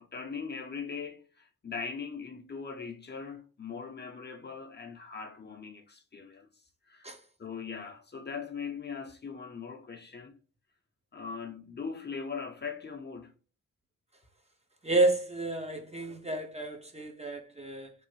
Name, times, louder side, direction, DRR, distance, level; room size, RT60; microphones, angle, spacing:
voice 1, 0.0-7.1 7.4-10.4 11.1-13.3, left 5 dB, 35° left, 0.7 m, -40 dB
voice 2, 14.8-17.9, right 2 dB, 20° right, 0.6 m, -30 dB
3.4 x 2.0 x 3.0 m
cardioid pair, 60°, 31 cm